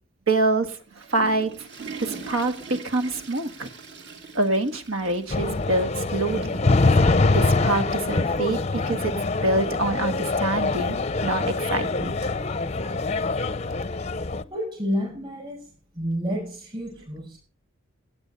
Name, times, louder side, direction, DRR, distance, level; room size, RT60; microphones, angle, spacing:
voice 1, 0.3-0.7 1.1-1.5 2.0-2.5 2.8-3.7 4.3-6.6 7.3-9.1 9.4-11.0 11.2-12.3, right 2 dB, 80° right, 9 dB, 1.8 m, -25 dB
Water / Toilet flush, 0.7-5.7 6.0-6.1 6.9-7.0 8.2-8.3, right 5 dB, 55° right, 2.4 m, -41 dB
sound 1, 5.3-14.4, left 3 dB, 30° left, 0.6 m, -24 dB
voice 2, 14.4-15.7 16.0-17.4, equal, 25° right, -4 dB, 6.7 m, -30 dB
15.5 x 9.1 x 5.4 m, 0.40 s
head